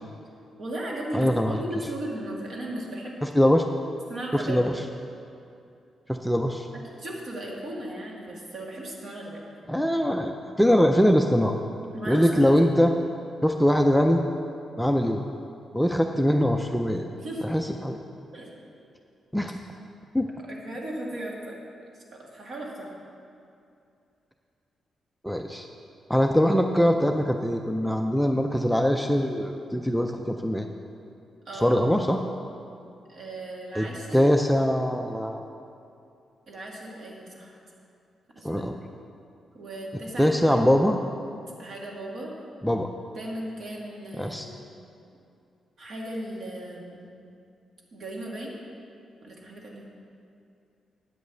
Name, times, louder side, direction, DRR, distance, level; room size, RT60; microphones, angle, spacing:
voice 1, 0.6-3.2 4.1-4.6 6.7-9.4 11.9-12.6 17.2-17.5 18.3-18.5 20.5-21.6 22.1-23.0 31.5-31.8 33.1-34.3 36.5-37.6 38.4-38.7 39.5-40.6 41.6-42.3 43.2-44.7 45.8-47.1 47.9-48.6 49.2-49.9, right 1 dB, 50° right, -2 dB, 1.8 m, -36 dB
voice 2, 1.1-1.6 3.2-3.6 4.3-4.7 6.1-6.7 9.7-11.6 12.1-12.9 13.4-14.2 14.8-15.2 15.7-17.1 17.4-18.0 19.3-19.6 20.1-20.3 25.2-25.7 26.1-30.7 31.5-32.2 33.8-35.4 38.4-38.8 40.2-41.0 42.6-42.9 44.2-44.5, equal, ahead, 3 dB, 0.3 m, -22 dB
9.0 x 5.3 x 7.9 m, 2.6 s
wide cardioid pair, 160°, 0 cm